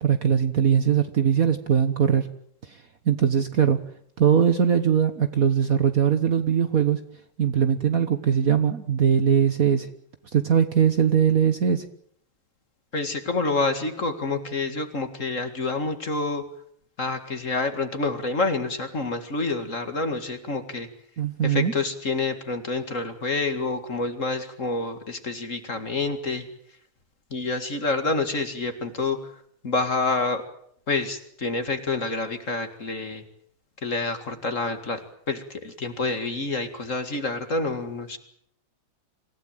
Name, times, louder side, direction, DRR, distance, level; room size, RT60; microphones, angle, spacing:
voice 1, 0.0-2.3 2.7-2.8 3.0-3.8 4.2-7.0 7.4-9.9 10.3-11.8 21.2-21.7, right 8 dB, 50° right, 9 dB, 1.4 m, -21 dB
voice 2, 12.9-16.4 17.0-20.9 21.4-26.5 27.3-29.3 29.6-30.4 30.9-33.2 33.8-38.2, left 3 dB, 40° left, 8 dB, 2.3 m, -28 dB
27.0 x 16.0 x 9.0 m, 0.68 s
omnidirectional pair, 2.3 m